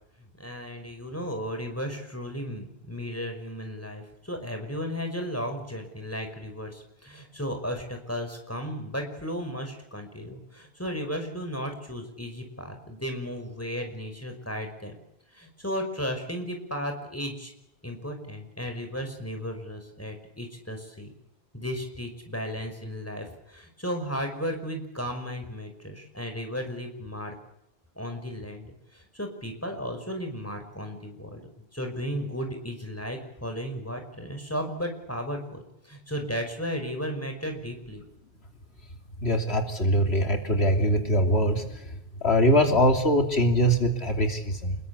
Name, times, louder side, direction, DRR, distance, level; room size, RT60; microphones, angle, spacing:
voice 1, 0.4-15.0 15.3-17.5 17.8-21.1 21.5-27.3 28.0-31.4 31.7-38.0, equal, 15° left, 5 dB, 5.6 m, -34 dB
voice 2, 39.2-41.6 42.2-44.8, equal, 85° left, 4 dB, 3.3 m, -22 dB
28.5 x 21.5 x 8.5 m, 0.81 s
omnidirectional pair, 1.1 m